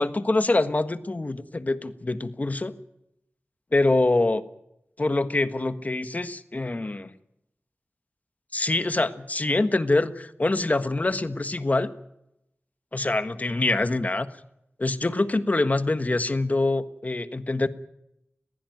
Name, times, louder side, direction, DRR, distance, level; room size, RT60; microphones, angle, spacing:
voice 1, 0.0-2.7 3.7-4.4 5.0-7.1 8.5-11.9 12.9-14.3 14.8-17.7, left 2 dB, 40° left, 12 dB, 1.4 m, -25 dB
20.5 x 15.5 x 9.3 m, 0.83 s
wide cardioid pair, 60°, 4 cm